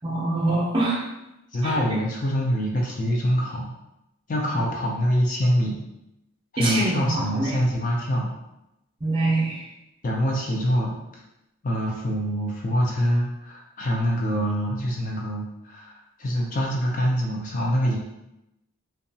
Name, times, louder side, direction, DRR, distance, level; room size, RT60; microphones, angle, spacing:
voice 1, 0.0-1.0 1.6-1.8 6.6-7.6 9.0-9.6, right 2 dB, 25° right, -6 dB, 0.5 m, -24 dB
voice 2, 1.5-3.7 4.3-5.8 6.5-8.3 10.0-11.0 11.6-18.0, equal, 35° left, -2 dB, 0.4 m, -25 dB
2.8 x 2.2 x 2.6 m, 0.88 s
head